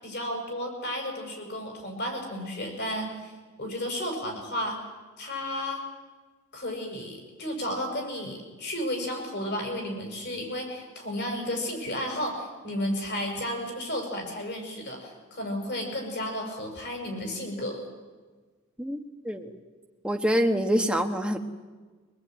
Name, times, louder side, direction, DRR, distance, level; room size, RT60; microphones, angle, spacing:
voice 1, 0.0-3.3 3.6-4.8 5.2-5.8 6.5-17.8, left 1 dB, 50° left, 3 dB, 6.6 m, -33 dB
voice 2, 18.8-19.5 20.0-21.4, equal, 5° right, 4 dB, 1.5 m, -26 dB
24.0 x 20.5 x 9.3 m, 1.4 s
head